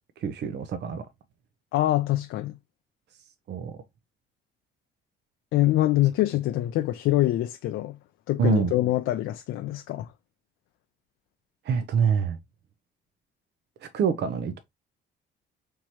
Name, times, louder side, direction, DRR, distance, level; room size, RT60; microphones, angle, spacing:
voice 1, 0.2-1.0 3.5-3.8 8.4-8.7 11.6-12.4 13.8-14.6, right 6 dB, 60° right, 0.5 m, -26 dB
voice 2, 1.7-2.6 5.5-8.0 8.3-10.1, left 15 dB, 80° left, 0.4 m, -24 dB
4.6 x 3.0 x 2.8 m
cardioid pair, 90°, 20 cm